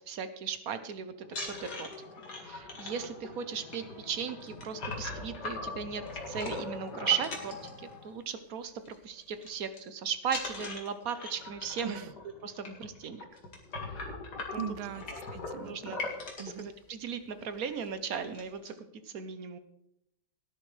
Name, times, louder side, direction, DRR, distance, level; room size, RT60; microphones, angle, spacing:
voice 1, 0.1-1.9 2.4-12.0 12.4-13.2 14.5-14.6 15.6-16.0 16.4-19.6, right 7 dB, 55° right, 10 dB, 1.1 m, -37 dB
sound 1, 1.2-8.4 8.7-9.0 9.2-9.8 10.2-16.6 17.3-17.4 17.7-17.9 18.1-18.7, left 3 dB, 55° left, 2.6 m, -40 dB
voice 2, 14.5-15.0 15.3-16.0 16.4-16.7, right 9 dB, 85° right, 15 dB, 1.5 m, -40 dB
18.0 x 10.5 x 3.3 m, 0.82 s
omnidirectional pair, 2.2 m